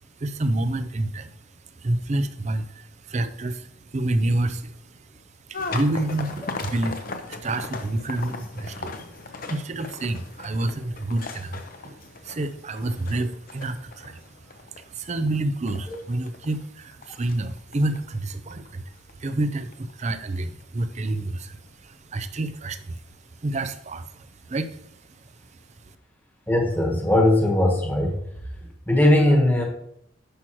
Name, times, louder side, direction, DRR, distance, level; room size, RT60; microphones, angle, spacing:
voice 1, 0.2-1.4 1.7-23.0 23.3-25.4 25.8-26.0, right 2 dB, 35° right, 11 dB, 0.5 m, -29 dB
sound 1, 5.5-20.6 20.9-21.4 22.2-22.3 22.7-23.0, left 3 dB, 45° left, 0.7 m, -38 dB
voice 2, 26.5-28.2 28.9-29.6, left 1 dB, 10° left, 1 dB, 1.3 m, -19 dB
10.0 x 6.1 x 3.0 m, 0.71 s
head